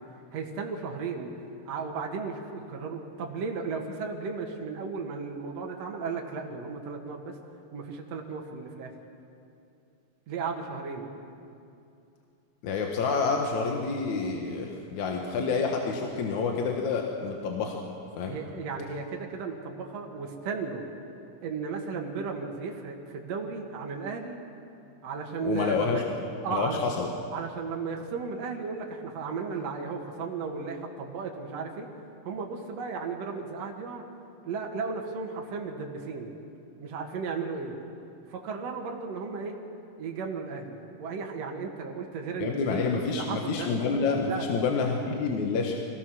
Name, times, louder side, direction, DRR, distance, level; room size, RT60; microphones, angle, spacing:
voice 1, 0.3-1.3 1.7-7.3 7.7-8.9 10.3-11.1 18.3-20.8 21.4-24.4 25.0-26.0 26.4-26.8 27.3-31.9 32.2-34.0 34.4-36.3 36.8-37.8 38.3-39.6 40.0-42.8 43.1-43.7 44.2-44.6, right 4 dB, 60° right, 1 dB, 2.7 m, -35 dB
voice 2, 12.6-17.8 18.2-18.4 25.4-26.0 26.5-27.1 42.4-45.7, left 4 dB, 75° left, 1 dB, 2.6 m, -28 dB
24.5 x 18.0 x 6.2 m, 2.6 s
omnidirectional pair, 3.5 m